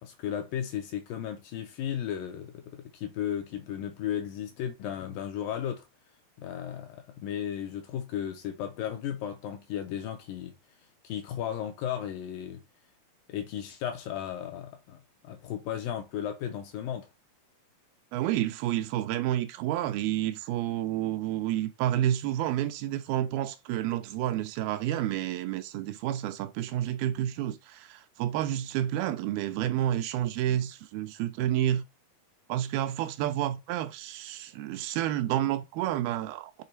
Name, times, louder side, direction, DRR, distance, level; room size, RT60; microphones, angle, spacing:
voice 1, 0.0-5.9 6.4-10.6 11.0-12.6 13.3-17.1, left 10 dB, 80° left, 2.1 m, -35 dB
voice 2, 18.1-31.8 32.5-36.6, right 12 dB, 80° right, 2.3 m, -30 dB
6.7 x 3.3 x 4.4 m
omnidirectional pair, 4.4 m